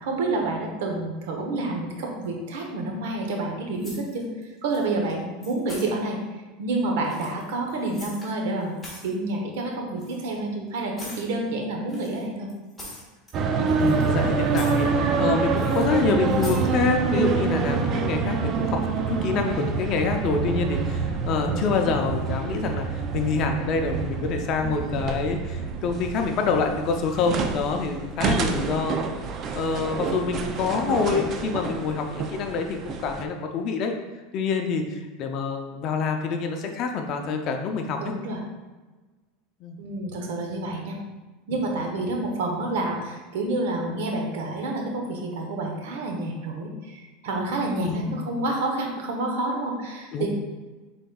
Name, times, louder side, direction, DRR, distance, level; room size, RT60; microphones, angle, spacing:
voice 1, 0.0-4.2 4.6-6.2 6.6-8.7 9.0-12.5 21.5-21.9 38.0-38.4 39.8-41.0 41.5-50.3, right 2 dB, 80° right, 1 dB, 1.0 m, -29 dB
sound 1, 3.8-4.4 4.7-5.1 5.4-5.9 7.0-8.3 8.6-9.1 10.0-10.2 11.0-11.3 11.9-13.4 13.7-14.2 14.4-14.9 15.6-15.8 16.3-16.6, left 1 dB, 5° left, 1.5 m, -42 dB
sound 2, 13.3-33.2, right 5 dB, 35° right, 0.4 m, -27 dB
voice 2, 13.8-29.0 29.5-33.9 34.3-38.1 39.6-39.8 47.8-48.2 50.1-50.3, left 4 dB, 45° left, 4 dB, 0.5 m, -26 dB
5.1 x 4.0 x 2.3 m, 1.2 s
supercardioid pair, 130°, 0 cm